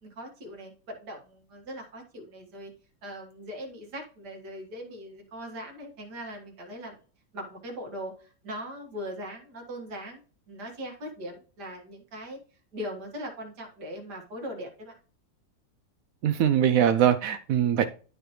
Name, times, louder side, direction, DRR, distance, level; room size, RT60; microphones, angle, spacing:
voice 1, 0.0-2.7 3.0-7.0 7.3-10.2 10.5-12.4 12.7-15.0, equal, 60° right, 2 dB, 2.3 m, -40 dB
voice 2, 16.2-17.9, right 9 dB, 85° right, 11 dB, 0.7 m, -22 dB
12.0 x 4.4 x 3.1 m, 0.39 s
omnidirectional pair, 2.0 m